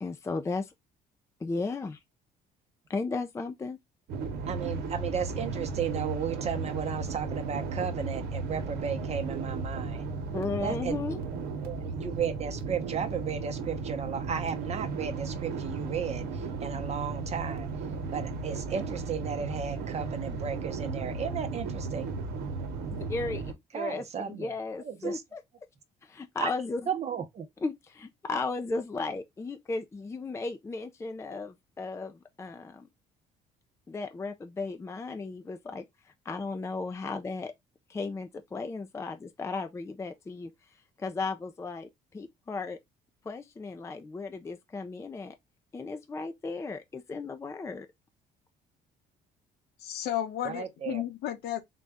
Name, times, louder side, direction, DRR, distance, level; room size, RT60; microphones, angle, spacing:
voice 1, 0.0-0.7 1.4-2.0 2.9-3.8 10.3-11.2 22.9-25.4 26.0-26.9 27.6-32.9 33.9-37.5 37.9-40.5 41.0-42.8 43.3-45.4 45.7-47.9, left 3 dB, 15° left, 0.4 m, -35 dB
sound 1, 4.1-23.5, right 4 dB, 75° right, 1.0 m, -35 dB
voice 2, 4.5-10.1 10.6-11.0 11.6-16.3 16.6-17.7 18.1-22.1 23.7-24.5 24.8-25.2 26.4-26.5 26.9-27.5 50.4-51.0, right 7 dB, 40° right, 0.8 m, -34 dB
voice 3, 49.8-51.6, left 11 dB, 75° left, 0.9 m, -33 dB
3.9 x 2.3 x 3.5 m
cardioid pair, 110°, 17 cm